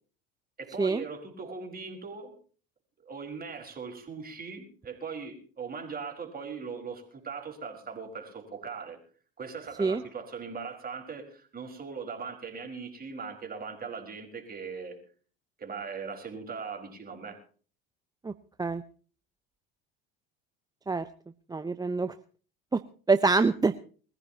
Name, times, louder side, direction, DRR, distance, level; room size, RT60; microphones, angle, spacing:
voice 1, 0.6-2.3 3.0-9.0 9.4-15.0 15.6-17.4, right 5 dB, 30° right, 4 dB, 4.7 m, -40 dB
voice 2, 21.5-22.1 22.7-22.8 23.1-23.7, right 3 dB, 15° right, 11 dB, 0.7 m, -25 dB
22.0 x 15.0 x 2.9 m, 0.40 s
hypercardioid pair, 80°, 30 cm